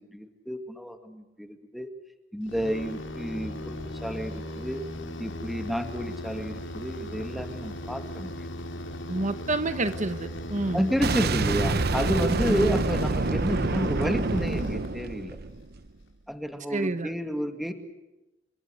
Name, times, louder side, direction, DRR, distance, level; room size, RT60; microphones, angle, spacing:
voice 1, 0.0-1.9 2.3-4.8 5.2-8.5 10.7-15.4 16.3-17.7, equal, ahead, 6 dB, 2.3 m, -30 dB
sound 1, 2.5-15.3, left 1 dB, 75° left, 4.0 m, -37 dB
voice 2, 9.1-10.8 16.7-17.1, right 2 dB, 40° right, 10 dB, 1.3 m, -28 dB
Boom, 11.0-15.9, right 3 dB, 55° right, 0.9 m, -27 dB
29.5 x 24.5 x 6.6 m, 1.0 s
head